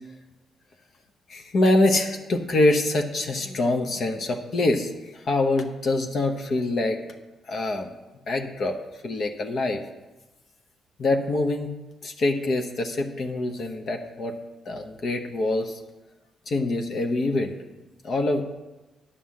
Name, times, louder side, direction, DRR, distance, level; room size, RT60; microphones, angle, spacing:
voice 1, 1.3-7.0 7.5-7.9 8.3-8.8 9.0-9.8 11.0-11.7 12.0-14.4 14.6-15.8 16.5-17.5 18.0-18.4, left 2 dB, 50° left, 5 dB, 0.9 m, -25 dB
10.0 x 5.5 x 7.5 m, 1.1 s
cardioid pair, 125°, 0 cm